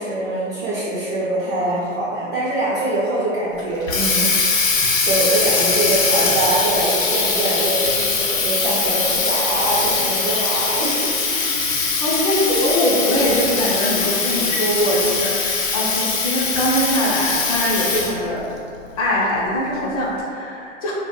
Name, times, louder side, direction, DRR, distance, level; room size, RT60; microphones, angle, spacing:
voice 1, 0.0-4.3 4.6-11.1 12.2-12.6, right 1 dB, 40° right, -8 dB, 0.5 m, -23 dB
Water tap faucet, 3.6-18.3, left 4 dB, 85° left, 0.6 m, -21 dB
voice 2, 12.0-18.5 19.0-20.9, equal, 30° left, -5 dB, 0.4 m, -22 dB
2.1 x 2.0 x 3.0 m, 2.4 s
figure-of-eight pair, 120°, 39 cm